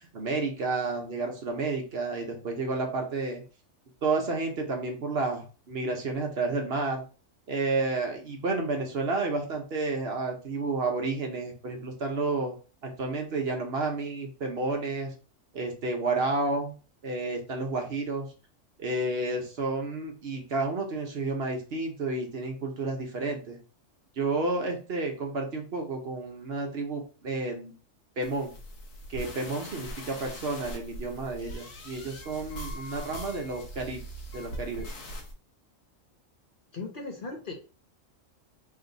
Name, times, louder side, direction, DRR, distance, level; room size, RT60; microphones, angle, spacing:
voice 1, 0.1-3.4 4.0-7.0 7.5-12.5 12.8-15.1 15.5-16.7 17.0-18.3 18.8-23.6 24.2-27.7 28.2-28.5 29.1-34.0 34.3-34.9, right 3 dB, 55° right, 2 dB, 1.0 m, -31 dB
sound 1, 28.2-35.3, equal, 80° left, 1.4 m, -41 dB
voice 2, 36.7-37.5, left 3 dB, 50° left, 0 dB, 0.7 m, -37 dB
3.2 x 2.8 x 3.8 m, 0.35 s
omnidirectional pair, 1.3 m